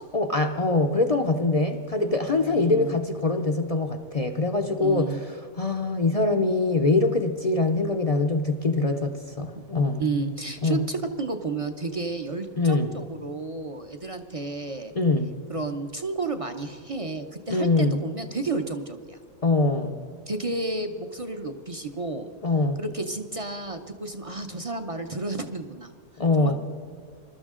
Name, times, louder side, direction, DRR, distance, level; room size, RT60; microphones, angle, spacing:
voice 1, 0.1-10.0 10.6-10.8 12.6-12.9 14.9-15.3 17.5-18.0 19.4-20.0 22.4-22.8 26.2-26.6, left 3 dB, 50° left, 5 dB, 0.4 m, -23 dB
voice 2, 2.3-3.0 4.8-5.2 9.5-9.6 10.0-14.9 15.5-19.2 20.3-22.3 22.8-25.9 26.4-26.6, right 3 dB, 40° right, 6 dB, 0.5 m, -31 dB
21.5 x 12.5 x 3.7 m, 2.2 s
omnidirectional pair, 1.6 m